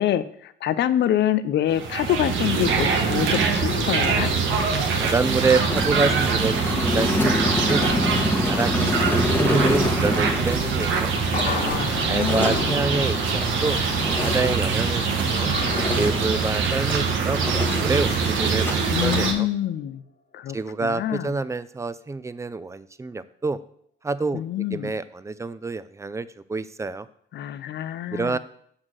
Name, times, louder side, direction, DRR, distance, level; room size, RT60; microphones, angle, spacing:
voice 1, 0.0-4.3 11.6-12.8 18.9-20.0 20.3-20.6 20.8-21.3 24.3-24.9 27.3-28.4, left 11 dB, 60° left, 14 dB, 0.5 m, -26 dB
sound 1, 1.7-19.3, right 5 dB, 80° right, 1.0 m, -23 dB
voice 2, 5.0-7.9 8.4-11.1 12.1-13.8 14.2-15.0 15.3-15.5 15.9-17.4 17.8-19.5 20.5-23.6 24.0-27.1 28.1-28.4, right 3 dB, 15° right, 15 dB, 0.3 m, -27 dB
sound 2, 5.6-15.3 15.6-17.0 17.3-18.7 19.0-19.3, left 2 dB, 10° left, 1.1 m, -27 dB
sound 3, 10.6-19.1 19.4-19.5, left 4 dB, 40° left, 1.5 m, -36 dB
6.3 x 3.8 x 6.2 m, 0.66 s
cardioid pair, 90°, 20 cm